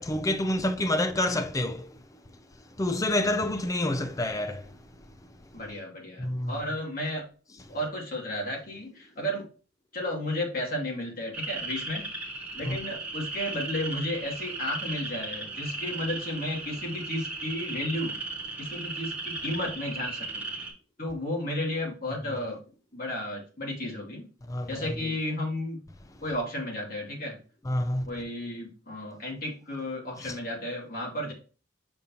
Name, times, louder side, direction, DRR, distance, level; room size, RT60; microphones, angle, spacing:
voice 1, 0.0-1.9 2.8-4.7 6.2-6.5 12.6-12.8 24.5-25.1 27.7-28.1 30.2-30.3, left 1 dB, 15° left, 0.4 m, -28 dB
voice 2, 5.5-7.2 7.7-9.5 9.9-12.0 12.5-18.1 18.6-20.4 21.0-22.6 22.9-24.3 24.7-25.8 26.2-27.4 28.1-31.3, left 1 dB, 50° left, 2.5 m, -33 dB
sound 1, 11.3-20.7, right 3 dB, 10° right, 2.6 m, -36 dB
6.9 x 5.2 x 2.9 m
head